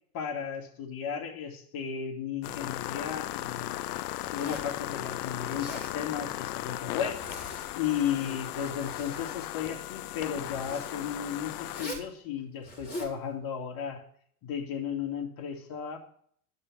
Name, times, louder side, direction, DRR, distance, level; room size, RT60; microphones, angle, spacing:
voice 1, 0.1-3.9 4.3-14.0 14.4-16.0, left 8 dB, 50° left, 3 dB, 2.6 m, -35 dB
sound 1, 2.4-11.9, left 16 dB, 85° left, 0.6 m, -37 dB
Zipper (clothing), 4.2-4.8 5.4-6.0 7.0-7.7 8.3-9.3 10.4-11.0 11.7-12.1 12.6-13.2, equal, 20° left, 4.4 m, -42 dB
12.0 x 5.5 x 8.7 m, 0.62 s
hypercardioid pair, 110°, 45 cm